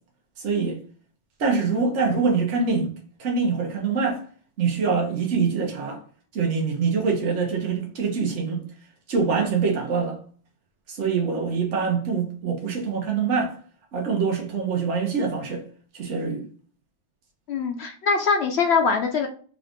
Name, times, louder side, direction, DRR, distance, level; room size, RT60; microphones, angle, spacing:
voice 1, 0.4-0.8 1.4-2.9 3.2-4.2 4.6-6.0 6.3-8.6 9.1-10.2 10.9-13.5 13.9-15.6 15.9-16.4, right 5 dB, 75° right, 1.3 m, -24 dB
voice 2, 17.5-19.3, left 5 dB, 70° left, 0.8 m, -22 dB
3.8 x 2.5 x 3.5 m
omnidirectional pair, 1.2 m